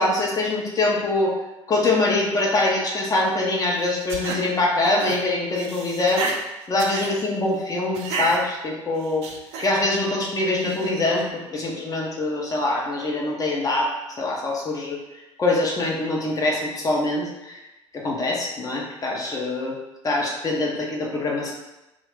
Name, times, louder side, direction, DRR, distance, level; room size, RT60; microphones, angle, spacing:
voice 1, 0.0-1.4 1.7-6.3 6.7-9.2 9.6-13.9 14.2-15.0 15.4-17.6 17.9-19.8 20.0-21.5, left 2 dB, 25° left, -2 dB, 0.7 m, -24 dB
sound 1, 3.8-4.4 4.8-5.2 5.5-6.4 6.8-7.1 7.9-8.4 9.0-9.7 10.6-11.2, right 4 dB, 45° right, 0.4 m, -31 dB
2.4 x 2.3 x 3.6 m, 0.99 s
figure-of-eight pair, 65°, 15 cm